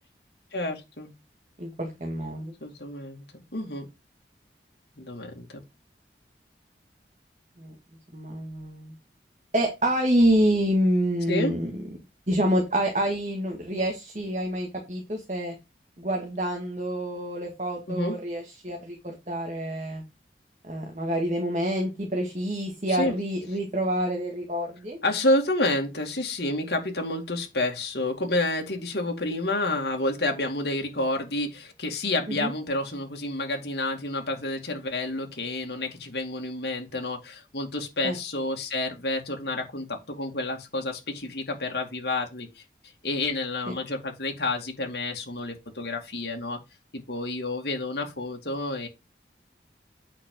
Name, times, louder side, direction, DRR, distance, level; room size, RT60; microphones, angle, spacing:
voice 1, 0.5-1.1 2.6-3.9 5.0-5.6 11.3-11.6 17.9-18.2 22.9-23.1 25.0-42.5 43.0-46.6 46.9-48.9, left 2 dB, 70° left, 2.3 m, -29 dB
voice 2, 1.6-2.5 7.6-7.7 8.1-8.9 9.5-11.9 12.3-15.6 16.0-20.0 20.6-25.0 32.3-32.5 38.0-38.2, equal, 40° right, 1.9 m, -27 dB
8.8 x 6.0 x 3.8 m
head